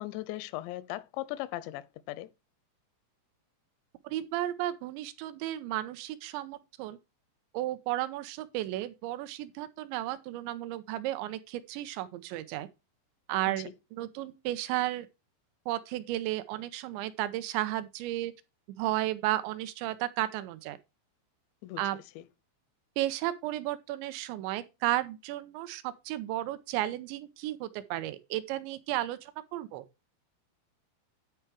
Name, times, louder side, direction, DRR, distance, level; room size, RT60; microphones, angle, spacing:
voice 1, 0.0-2.3 13.5-13.6 21.6-21.8 22.2-22.3, left 16 dB, 90° left, 2.9 m, -38 dB
voice 2, 4.0-7.0 7.5-12.7 13.3-15.1 15.7-18.3 18.8-20.8 21.8-22.0 23.0-29.9, right 15 dB, 90° right, 3.0 m, -33 dB
10.0 x 4.5 x 4.7 m
omnidirectional pair, 5.0 m